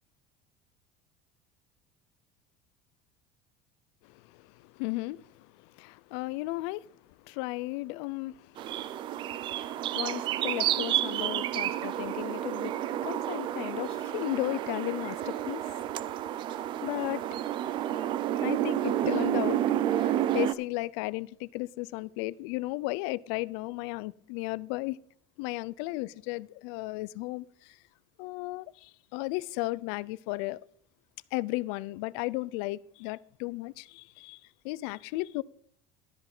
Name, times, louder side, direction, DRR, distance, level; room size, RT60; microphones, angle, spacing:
voice 1, 4.3-6.9 7.3-8.9 9.5-15.9 16.8-17.2 18.4-19.6 19.9-25.0 25.4-27.8 28.2-30.6 31.3-34.4 34.6-35.4, left 21 dB, 75° left, 0.4 m, -35 dB
sound 1, 8.6-20.5, right 12 dB, 35° right, 0.4 m, -30 dB
12.5 x 5.6 x 6.0 m
cardioid pair, 175°, 15 cm